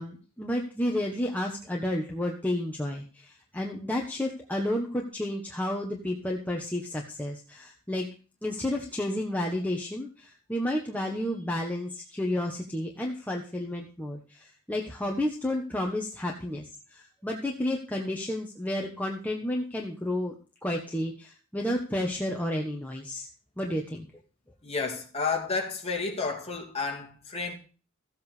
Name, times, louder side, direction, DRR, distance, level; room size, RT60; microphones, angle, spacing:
voice 1, 0.0-8.1 8.4-20.3 20.6-23.3 23.6-24.1, left 1 dB, 5° left, 1.3 m, -31 dB
voice 2, 24.6-27.5, left 4 dB, 30° left, 2.6 m, -31 dB
15.0 x 8.0 x 5.1 m
head